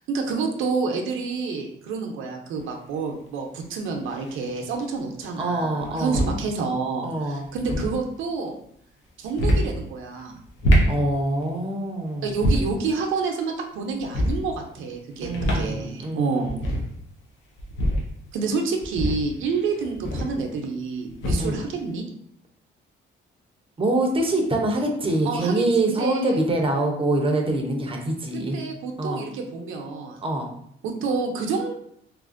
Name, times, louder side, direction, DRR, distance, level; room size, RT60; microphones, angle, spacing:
voice 1, 0.1-8.6 9.2-10.4 12.2-16.6 18.3-22.1 25.2-26.4 28.3-30.2 30.8-31.8, right 4 dB, 85° right, 2 dB, 0.5 m, -28 dB
sound 1, 2.6-2.7 4.1-4.6 5.8-6.4 7.4-7.9 9.2-9.7 10.4-11.0 12.3-12.8 14.0-14.4 15.2-15.7 16.0-16.1 16.4-16.9 17.6-18.1 18.8-20.4 21.1-21.6, equal, 85° left, 0.7 m, -24 dB
voice 2, 5.4-6.3 7.0-7.5 10.9-12.4 15.2-16.6 21.4-21.6 23.8-28.6 29.0-29.3 30.2-30.5, right 2 dB, 25° right, 2 dB, 0.6 m, -25 dB
3.2 x 2.4 x 2.5 m, 0.70 s
cardioid pair, 90°, 20 cm